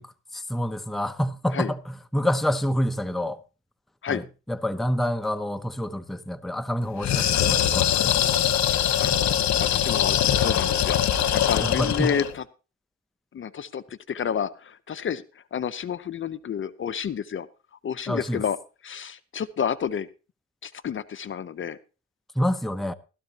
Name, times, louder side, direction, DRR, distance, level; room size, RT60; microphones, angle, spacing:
voice 1, 0.0-3.4 4.1-8.1 11.6-12.1 18.1-18.4 22.3-22.9, equal, ahead, 0.7 m, -27 dB
sound 1, 7.0-12.3, left 10 dB, 65° left, 1.1 m, -22 dB
voice 2, 8.7-9.1 9.6-11.0 11.3-12.4 13.3-15.2 15.5-17.5 17.8-18.6 18.8-20.1 20.6-21.8, left 8 dB, 40° left, 0.7 m, -30 dB
15.5 x 13.0 x 2.9 m
cardioid pair, 90°, 30 cm